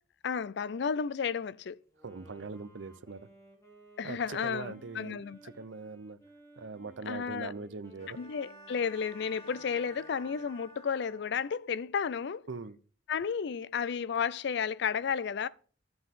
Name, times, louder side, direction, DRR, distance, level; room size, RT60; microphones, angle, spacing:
voice 1, 0.2-1.8 4.0-5.4 7.1-7.5 8.2-12.5 13.1-15.5, left 6 dB, 65° left, 0.4 m, -32 dB
Wind instrument woodwind instrument, 1.9-10.8, right 1 dB, 15° left, 3.2 m, -58 dB
voice 2, 2.0-3.2 4.0-5.2 5.5-6.2 6.6-8.2 12.5-12.8, right 4 dB, 85° right, 0.7 m, -41 dB
Bowed string instrument, 8.0-11.7, right 1 dB, 35° left, 2.7 m, -53 dB
13.5 x 7.8 x 3.7 m
head